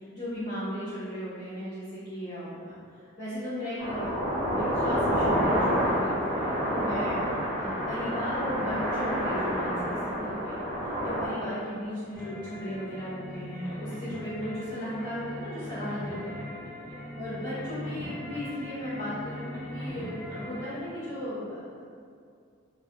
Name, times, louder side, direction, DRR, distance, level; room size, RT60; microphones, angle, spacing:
voice 1, 0.1-2.8 3.2-4.2 4.6-7.2 7.6-10.7 11.0-16.4 17.2-21.8, equal, 50° left, -16 dB, 0.9 m, -36 dB
sound 1, 3.8-11.3, equal, 30° right, 0.6 m, -28 dB
sound 2, 12.1-20.8, left 1 dB, 10° left, 0.5 m, -40 dB
2.6 x 2.4 x 2.6 m, 2.3 s
head